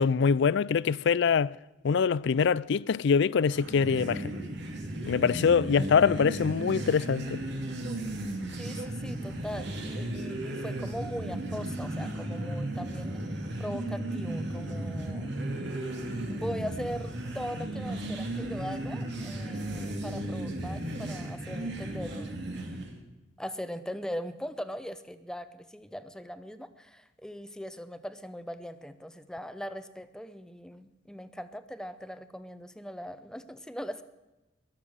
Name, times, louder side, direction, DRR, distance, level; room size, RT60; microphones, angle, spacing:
voice 1, 0.0-1.5 1.8-4.3 5.1-7.4, left 6 dB, 65° left, 0.4 m, -24 dB
sound 1, 3.5-23.0, right 1 dB, 65° right, 2.5 m, -35 dB
voice 2, 8.5-15.3 16.3-22.4 23.4-34.0, equal, 5° left, 0.8 m, -40 dB
22.0 x 7.5 x 6.4 m
head